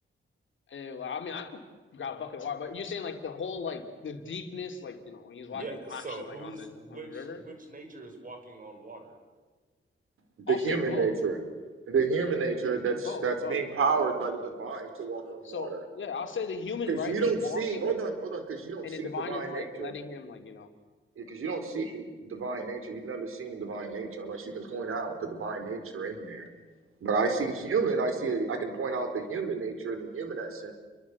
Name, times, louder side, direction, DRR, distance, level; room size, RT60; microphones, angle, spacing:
voice 1, 0.7-7.4 10.5-11.1 13.0-13.6 15.4-17.9 18.8-20.7, left 5 dB, 65° left, 6 dB, 3.0 m, -37 dB
voice 2, 5.5-9.1, right 3 dB, 40° right, 5 dB, 6.1 m, -43 dB
voice 3, 10.5-11.4 11.9-15.8 16.9-19.9 21.2-26.5 27.0-30.7, right 4 dB, 90° right, 7 dB, 4.5 m, -31 dB
29.0 x 23.5 x 8.5 m, 1.4 s
wide cardioid pair, 165°, 21 cm